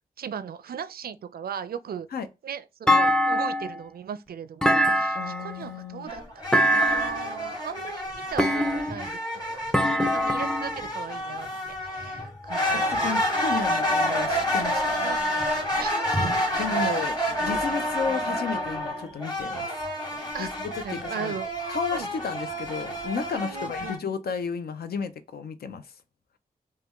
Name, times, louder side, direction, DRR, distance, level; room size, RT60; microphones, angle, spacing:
voice 1, 0.2-2.1 2.4-6.2 6.5-9.2 9.4-11.5 11.8-13.4 15.0-15.2 15.8-17.0 20.3-20.5 20.8-21.5 21.9-22.1 23.3-24.0, right 8 dB, 70° right, 0.4 m, -38 dB
Thump thud, 2.9-3.8 4.6-5.5 6.5-7.3 8.4-9.1 9.7-10.8, equal, 5° left, 0.4 m, -23 dB
voice 2, 5.1-6.1 12.6-15.0 16.6-19.7 20.4-21.3 21.7-25.9, left 6 dB, 75° left, 0.5 m, -33 dB
sound 1, 6.1-24.0, equal, 25° left, 1.8 m, -29 dB
3.3 x 2.2 x 2.9 m
cardioid pair, 45°, 16 cm